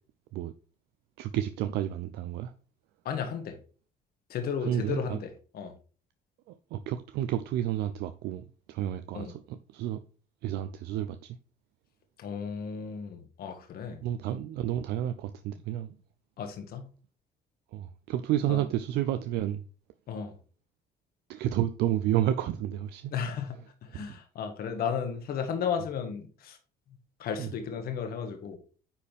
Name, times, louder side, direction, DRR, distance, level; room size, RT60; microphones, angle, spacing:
voice 1, 1.2-2.5 4.6-5.2 6.5-10.0 10.4-11.4 14.0-16.0 17.7-19.6 21.3-23.1 23.9-24.0 27.4-27.5, right 12 dB, 80° right, 0.6 m, -31 dB
voice 2, 3.0-3.6 4.3-5.7 9.1-9.3 12.2-14.0 16.4-16.9 18.5-18.6 20.1-20.4 23.1-23.6 23.9-26.6 27.2-28.6, left 7 dB, 65° left, 1.7 m, -34 dB
9.8 x 4.4 x 3.5 m
cardioid pair, 110°, 17 cm